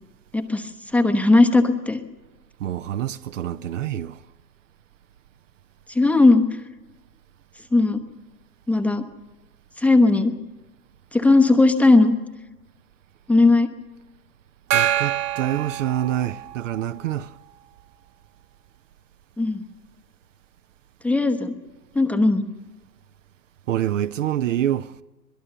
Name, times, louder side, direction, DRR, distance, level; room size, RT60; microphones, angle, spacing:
voice 1, 0.3-2.0 5.9-6.5 7.7-8.0 8.7-9.0 9.8-10.3 11.1-12.1 13.3-13.7 19.4-19.6 21.0-21.5 21.9-22.5, left 2 dB, 5° left, 0.9 m, -17 dB
voice 2, 2.6-4.2 14.7-17.3 23.7-24.9, right 11 dB, 50° right, 0.7 m, -26 dB
Gong, 14.7-16.7, right 11 dB, 30° right, 1.5 m, -25 dB
22.5 x 22.0 x 6.8 m
figure-of-eight pair, 115°, 50 cm